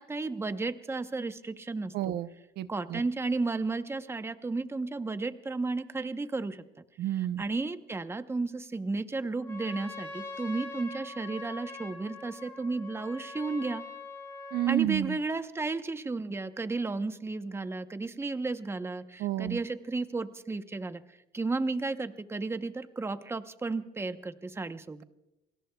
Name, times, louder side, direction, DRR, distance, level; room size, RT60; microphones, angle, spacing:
voice 1, 0.0-2.1 2.7-6.6 7.4-13.8 14.7-25.0, right 3 dB, 15° right, 10 dB, 0.9 m, -33 dB
voice 2, 1.9-2.3 2.6-3.0 7.0-7.4 14.5-15.2 19.2-19.6, right 14 dB, 75° right, 13 dB, 0.6 m, -30 dB
Trumpet, 9.3-14.8, left 3 dB, 15° left, 5.4 m, -43 dB
28.5 x 21.5 x 2.3 m, 0.94 s
cardioid pair, 110°, 17 cm